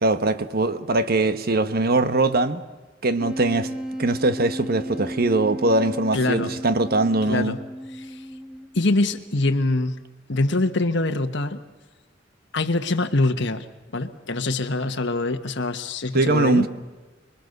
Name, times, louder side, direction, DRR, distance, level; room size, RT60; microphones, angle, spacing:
voice 1, 0.0-2.6 3.0-3.7 4.0-7.5 16.1-16.7, right 2 dB, 55° right, 11 dB, 1.3 m, -21 dB
Wind instrument woodwind instrument, 3.2-8.9, right 1 dB, 5° right, 1.8 m, -34 dB
voice 2, 6.1-6.5 7.3-7.6 7.9-8.2 8.7-10.0 10.3-11.6 12.5-13.7 13.9-16.7, left 2 dB, 65° left, 6 dB, 1.5 m, -24 dB
26.0 x 22.0 x 6.8 m, 1.2 s
head